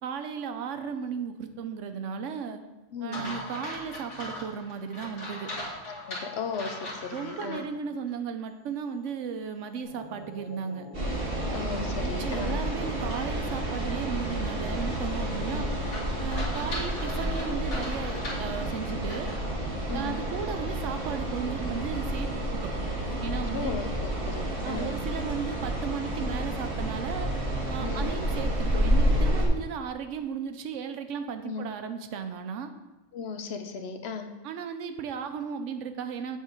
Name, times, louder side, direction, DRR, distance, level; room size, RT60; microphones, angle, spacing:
voice 1, 0.0-2.6 3.0-5.5 7.1-10.9 12.0-15.7 16.2-19.3 19.9-22.7 23.1-23.7 24.6-27.3 27.7-32.7 34.4-36.4, right 6 dB, 80° right, 8 dB, 1.0 m, -35 dB
voice 2, 2.9-3.4 5.9-7.7 11.5-12.6 15.5-15.7 19.9-20.2 23.5-24.9 27.8-28.1 31.4-31.6 33.1-34.3, left 5 dB, 65° left, 6 dB, 0.9 m, -36 dB
sound 1, 3.1-7.6 8.1-8.2 13.1-19.5, left 1 dB, 80° left, 2.2 m, -40 dB
sound 2, 9.8-25.0, left 1 dB, 45° left, 1.6 m, -45 dB
sound 3, 10.9-29.5, right 1 dB, 50° right, 1.7 m, -30 dB
8.0 x 3.7 x 5.0 m, 1.1 s
omnidirectional pair, 1.2 m